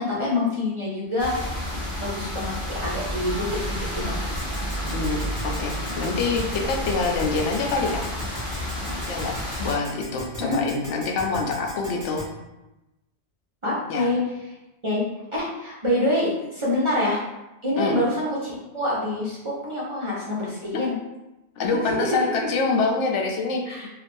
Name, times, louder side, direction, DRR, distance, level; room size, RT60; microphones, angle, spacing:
voice 1, 0.0-1.6 2.0-3.6 3.9-4.2 10.4-10.6 13.6-14.2 14.8-17.2 17.6-21.0 21.6-22.2 23.7-23.9, left 1 dB, 35° right, -7 dB, 0.5 m, -26 dB
sound 1, 1.2-9.8, equal, 50° left, 1.3 m, -30 dB
Keyboard (musical), 4.4-12.2, left 1 dB, 30° left, 1.4 m, -37 dB
voice 2, 4.9-8.1 9.1-12.2 13.9-14.1 17.8-18.0 20.7-20.8 21.6-23.9, left 3 dB, 85° left, 1 dB, 0.9 m, -26 dB
3.2 x 2.4 x 2.5 m, 0.99 s
omnidirectional pair, 1.2 m